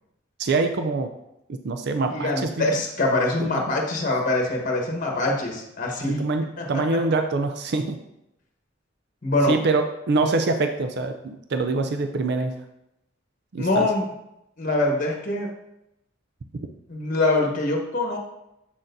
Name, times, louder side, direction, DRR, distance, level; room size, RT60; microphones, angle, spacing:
voice 1, 0.4-1.1 1.5-2.7 3.4-3.5 6.0-8.0 9.5-12.6 13.5-13.9, right 3 dB, 60° right, 7 dB, 0.4 m, -25 dB
voice 2, 2.1-6.2 6.6-6.8 9.2-9.6 13.6-14.1 14.6-15.5 16.9-18.2, left 2 dB, 45° left, 0 dB, 1.2 m, -24 dB
7.3 x 6.3 x 2.6 m, 0.84 s
head